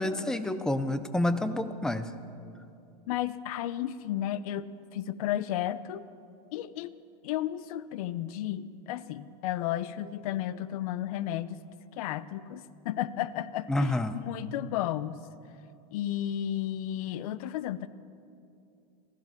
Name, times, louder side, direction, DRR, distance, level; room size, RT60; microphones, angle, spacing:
voice 1, 0.0-2.1 13.7-14.2, left 1 dB, 5° left, 11 dB, 0.4 m, -28 dB
voice 2, 3.1-6.1 6.5-6.9 7.2-11.6 12.0-15.2 15.9-17.9, left 12 dB, 60° left, 17 dB, 0.6 m, -33 dB
15.5 x 14.5 x 6.1 m, 2.6 s
supercardioid pair, 160°, 21 cm